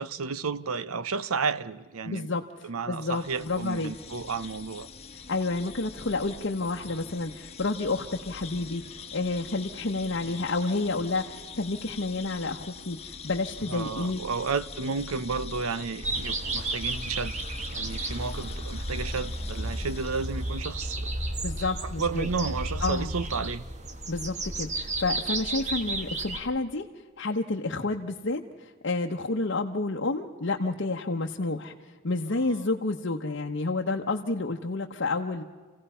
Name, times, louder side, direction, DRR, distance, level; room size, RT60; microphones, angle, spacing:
voice 1, 0.0-2.3 2.6-4.9 10.3-10.4 13.7-17.3 17.7-21.1 22.0-23.6 32.5-32.6, right 5 dB, 85° right, 0.8 m, -32 dB
voice 2, 2.0-3.9 5.3-14.2 21.4-22.3 22.8-23.1 24.1-26.9 27.2-31.7 32.0-35.4, left 3 dB, 55° left, 0.9 m, -30 dB
sound 1, 3.0-20.7, left 5 dB, 30° left, 1.0 m, -43 dB
sound 2, 16.0-26.4, right 2 dB, 35° right, 1.4 m, -33 dB
28.5 x 16.5 x 5.6 m
head